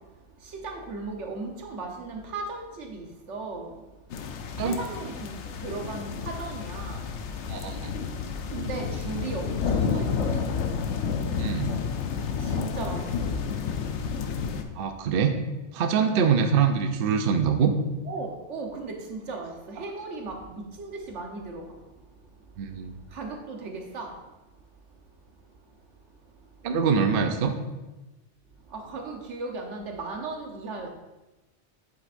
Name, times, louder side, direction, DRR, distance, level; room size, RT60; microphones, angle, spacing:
voice 1, 0.6-3.7 4.7-5.3 5.6-7.0 8.5-10.4 12.5-13.3 16.1-16.4 18.1-21.6 23.1-24.1 28.7-30.9, right 3 dB, 90° right, 2 dB, 1.4 m, -36 dB
sound 1, 4.1-14.6, left 6 dB, 80° left, 1.0 m, -30 dB
voice 2, 11.4-11.7 14.8-15.4 15.7-17.7 22.6-22.9 26.6-27.5, right 6 dB, 55° right, 6 dB, 0.8 m, -24 dB
8.5 x 7.8 x 2.6 m, 1.1 s
omnidirectional pair, 1.2 m